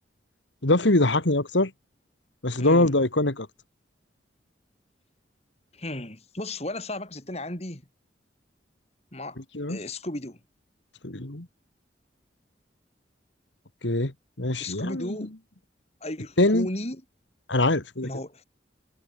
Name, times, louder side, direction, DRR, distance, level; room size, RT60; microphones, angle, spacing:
voice 1, 0.6-1.7 2.4-3.5 9.5-9.8 11.0-11.5 13.8-14.1 14.4-15.2 16.4-16.7 17.5-18.1, left 2 dB, 80° left, 2.4 m, -23 dB
voice 2, 2.6-2.9 5.7-7.8 9.1-9.4 9.7-10.4 14.6-15.3 16.0-17.0 18.0-18.4, left 1 dB, 35° left, 4.5 m, -34 dB
head